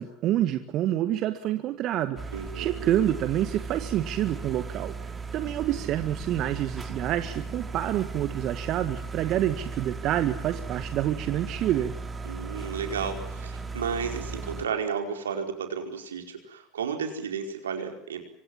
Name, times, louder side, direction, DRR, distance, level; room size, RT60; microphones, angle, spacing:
voice 1, 0.0-2.2 2.5-11.9, right 12 dB, 50° right, 10 dB, 1.7 m, -27 dB
sound 1, 2.2-14.7, right 4 dB, 20° right, 3.9 m, -37 dB
voice 2, 2.3-2.9 12.2-18.3, right 6 dB, 80° right, 5 dB, 4.8 m, -33 dB
27.0 x 24.5 x 7.4 m, 0.67 s
hypercardioid pair, 75°, 0 cm